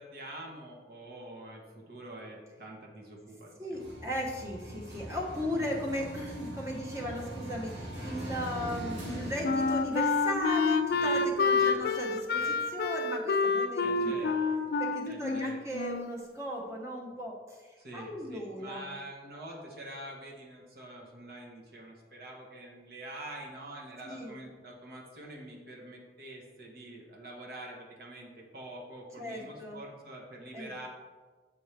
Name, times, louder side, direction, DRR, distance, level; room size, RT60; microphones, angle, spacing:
voice 1, 0.0-4.0 10.9-11.2 11.5-11.8 12.3-12.6 13.8-14.6 15.0-15.6 17.8-30.9, right 1 dB, 55° right, -1 dB, 1.0 m, -46 dB
voice 2, 3.6-14.4 14.8-18.9 24.0-24.3 29.2-29.8 30.5-30.7, equal, 15° right, -1 dB, 0.8 m, -37 dB
sound 1, 3.7-11.7, right 1 dB, 75° right, 1.9 m, -42 dB
Wind instrument woodwind instrument, 9.0-16.3, left 4 dB, 55° left, 0.3 m, -28 dB
7.3 x 4.3 x 3.3 m, 1.3 s
head